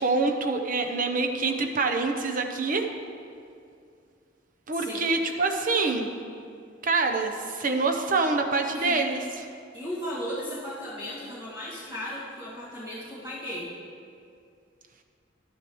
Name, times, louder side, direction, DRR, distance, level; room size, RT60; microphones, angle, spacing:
voice 1, 0.0-2.9 4.7-6.1 6.8-9.5, right 3 dB, 45° right, 5 dB, 0.7 m, -26 dB
voice 2, 4.7-5.1 8.7-9.0 9.7-13.7, equal, 25° right, -10 dB, 2.0 m, -36 dB
11.5 x 10.0 x 3.1 m, 2.4 s
head